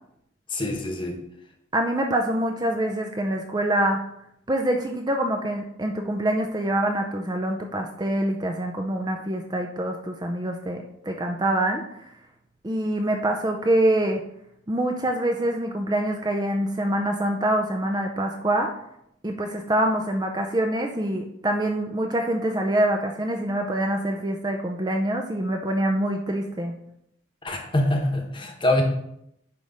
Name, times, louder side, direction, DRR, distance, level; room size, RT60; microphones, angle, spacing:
voice 1, 0.5-1.2 27.4-28.8, left 1 dB, 25° left, 2 dB, 1.1 m, -24 dB
voice 2, 1.7-4.0 4.5-12.1 12.6-14.2 14.7-18.7 19.2-26.7, right 1 dB, 20° right, 3 dB, 0.5 m, -25 dB
9.4 x 3.5 x 5.0 m, 0.77 s
head